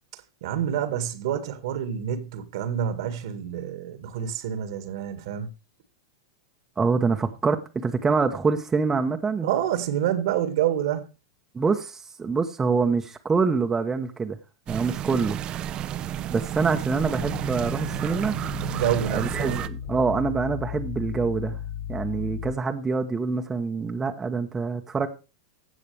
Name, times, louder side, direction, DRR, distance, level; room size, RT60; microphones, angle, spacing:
voice 1, 0.4-5.5 9.4-11.0 18.6-19.6, right 10 dB, 65° right, 1.8 m, -27 dB
voice 2, 6.8-9.5 11.5-14.4 14.7-15.4 16.3-18.4 19.1-21.6 21.9-25.1, right 4 dB, 15° right, 1.1 m, -25 dB
sound 1, 14.7-19.7, right 11 dB, 35° right, 0.7 m, -31 dB
sound 2, 17.2-22.5, left 10 dB, 65° left, 6.3 m, -35 dB
16.0 x 6.4 x 3.3 m
hypercardioid pair, 115°, 3 cm